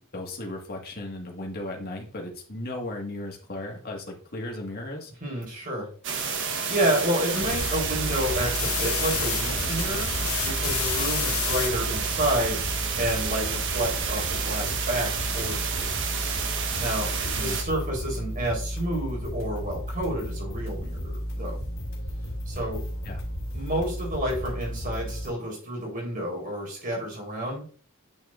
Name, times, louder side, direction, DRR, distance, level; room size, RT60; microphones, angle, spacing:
voice 1, 0.1-5.1 17.3-17.6 23.0-23.2, left 1 dB, 45° left, 0 dB, 1.8 m, -36 dB
voice 2, 5.2-5.9 6.3-15.9 16.8-21.6 22.5-22.8 23.5-27.6, right 1 dB, 40° right, -2 dB, 4.2 m, -30 dB
sound 1, 6.0-17.6, right 6 dB, 60° right, 1.2 m, -30 dB
sound 2, 6.1-11.7, left 9 dB, 85° left, 0.8 m, -32 dB
sound 3, 7.5-25.3, equal, 65° left, 2.8 m, -33 dB
9.0 x 6.4 x 2.6 m, 0.42 s
head